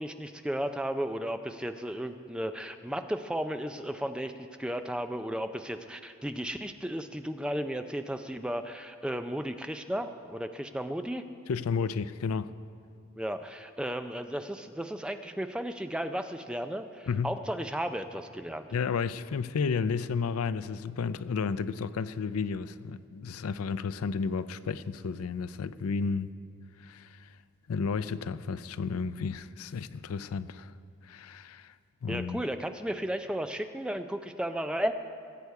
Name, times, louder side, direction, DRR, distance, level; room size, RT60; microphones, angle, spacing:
voice 1, 0.0-11.2 13.2-18.7 32.1-34.9, equal, 5° right, 0.4 m, -34 dB
voice 2, 11.5-12.5 17.1-17.3 18.7-26.3 26.8-27.3 27.7-30.7 31.0-31.7 32.0-32.4, left 5 dB, 90° left, 0.4 m, -32 dB
20.5 x 8.4 x 4.7 m
head